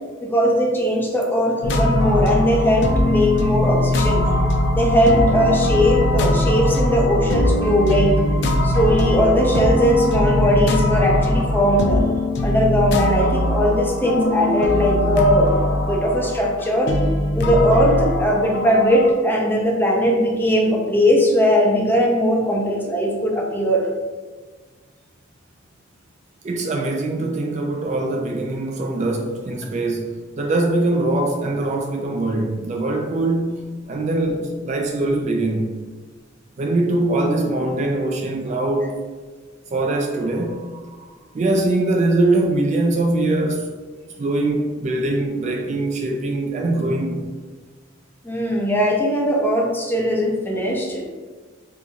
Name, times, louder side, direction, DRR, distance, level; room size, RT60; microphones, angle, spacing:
voice 1, 0.2-4.2 4.8-8.2 8.6-12.1 12.4-15.6 15.9-17.0 17.4-23.9 48.2-51.0, equal, 10° left, -2 dB, 0.6 m, -19 dB
sound 1, 1.6-19.1, left 1 dB, 60° left, 0.4 m, -21 dB
voice 2, 26.4-35.8 36.6-39.0 39.7-41.1 41.3-43.7 44.2-47.2, right 2 dB, 35° right, 2 dB, 0.3 m, -22 dB
4.4 x 2.6 x 2.3 m, 1.4 s
head